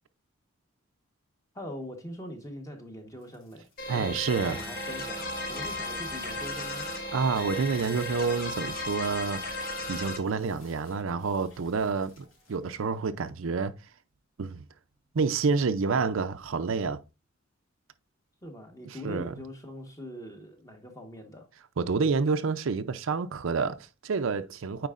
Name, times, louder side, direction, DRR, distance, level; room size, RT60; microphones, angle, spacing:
voice 1, 1.5-6.9 18.4-21.5, equal, 15° left, 1.1 m, -42 dB
sound 1, 3.1-13.4, left 2 dB, 85° left, 2.7 m, -58 dB
sound 2, 3.8-10.2, left 2 dB, 45° left, 1.1 m, -35 dB
voice 2, 3.9-4.6 7.1-13.7 14.4-14.6 15.1-17.0 19.0-19.3 21.8-24.9, right 4 dB, 75° right, 0.5 m, -28 dB
sound 3, 4.4-10.1, right 3 dB, 20° right, 0.6 m, -45 dB
9.1 x 4.6 x 2.4 m
head